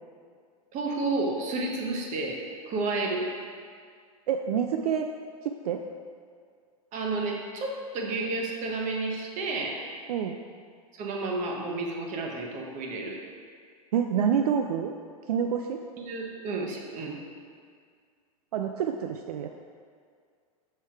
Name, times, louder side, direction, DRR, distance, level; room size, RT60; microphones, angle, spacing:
voice 1, 0.7-3.3 6.9-9.8 10.9-13.2 16.0-17.2, right 3 dB, 40° right, 0 dB, 1.3 m, -31 dB
voice 2, 4.3-5.1 5.4-5.8 10.1-10.4 13.9-14.9 15.3-15.8 18.5-19.5, right 8 dB, 75° right, 5 dB, 0.5 m, -27 dB
6.7 x 5.4 x 4.7 m, 2.1 s
hypercardioid pair, 110°, 20 cm